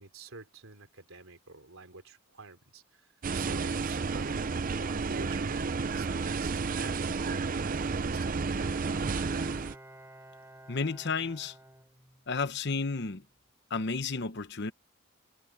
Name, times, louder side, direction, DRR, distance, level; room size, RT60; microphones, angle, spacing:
voice 1, 0.0-8.7, right 3 dB, 75° right, 3.6 m, -48 dB
sound 1, 3.2-9.7, right 4 dB, 40° right, 0.5 m, -31 dB
Bowed string instrument, 8.2-12.7 13.1-13.2, right 1 dB, 10° right, 7.7 m, -51 dB
voice 2, 10.7-11.5 12.3-13.2 13.7-14.7, left 4 dB, 55° left, 0.9 m, -32 dB
head